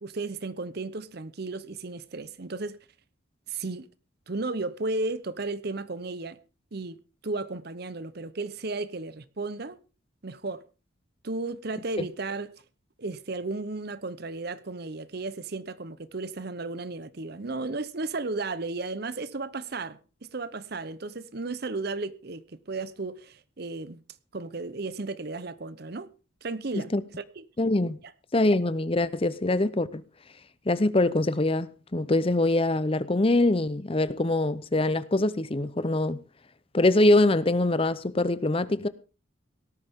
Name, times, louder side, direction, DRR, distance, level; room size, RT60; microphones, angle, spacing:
voice 1, 0.0-2.8 3.5-3.9 4.3-6.4 6.7-7.0 7.2-9.8 10.2-10.6 11.2-12.5 13.0-20.0 20.3-24.0 24.3-26.1 26.4-27.5, right 3 dB, 50° right, 0.8 m, -34 dB
voice 2, 27.6-28.0 28.3-30.0 30.7-36.2 36.7-38.9, left 2 dB, 30° left, 0.7 m, -23 dB
17.5 x 13.5 x 3.6 m
head